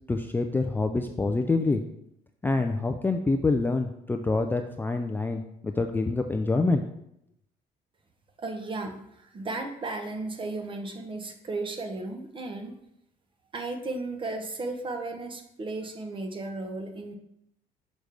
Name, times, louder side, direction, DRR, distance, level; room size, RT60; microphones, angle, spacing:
voice 1, 0.1-1.8 2.4-6.8, left 3 dB, 10° left, 5 dB, 0.3 m, -26 dB
voice 2, 8.4-12.8 13.5-17.1, right 2 dB, 30° right, 5 dB, 0.9 m, -35 dB
6.2 x 5.2 x 3.4 m, 0.78 s
cardioid pair, 110°, 17 cm